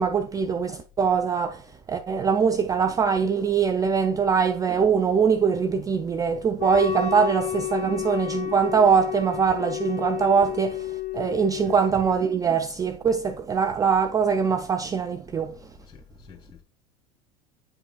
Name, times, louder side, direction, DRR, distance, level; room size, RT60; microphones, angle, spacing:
voice 1, 0.0-15.5, right 6 dB, 20° right, 0.4 m, -23 dB
Wind instrument woodwind instrument, 6.6-12.4, left 13 dB, 60° left, 0.8 m, -31 dB
voice 2, 15.9-16.6, left 7 dB, 25° left, 1.4 m, -48 dB
9.5 x 5.0 x 2.4 m
hypercardioid pair, 75°, 20 cm